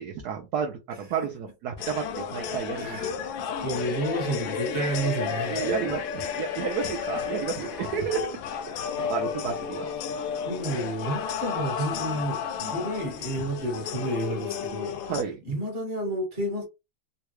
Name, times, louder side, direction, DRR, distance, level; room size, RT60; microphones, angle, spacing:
voice 1, 0.0-3.0 5.5-8.3 8.7-9.9 10.1-10.2 12.6-12.7 15.1-15.4, right 6 dB, 70° right, 0.9 m, -31 dB
sound 1, 1.8-15.2, left 7 dB, 75° left, 1.3 m, -32 dB
voice 2, 2.7-3.2 3.6-5.7 10.5-15.1 15.4-16.6, right 1 dB, 35° right, 1.3 m, -30 dB
3.6 x 2.3 x 3.1 m
omnidirectional pair, 2.2 m